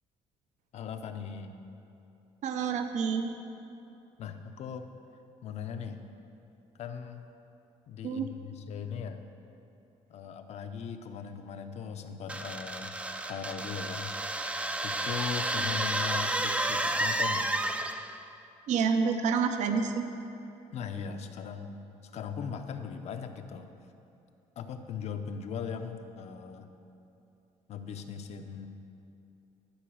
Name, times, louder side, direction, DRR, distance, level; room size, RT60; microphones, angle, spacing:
voice 1, 0.7-1.6 4.2-4.9 5.4-6.0 6.8-7.3 7.9-9.2 10.1-13.0 13.3-14.1 14.8-17.5 20.7-21.8 22.1-23.7 24.6-26.7 27.7-28.7, left 6 dB, 60° left, 7 dB, 0.7 m, -39 dB
voice 2, 2.4-3.3 8.0-8.3 18.7-20.0, right 6 dB, 70° right, 7 dB, 0.7 m, -28 dB
sound 1, 12.3-18.2, right 1 dB, 10° right, 0.4 m, -31 dB
12.0 x 4.9 x 6.3 m, 2.8 s
cardioid pair, 120°, 13 cm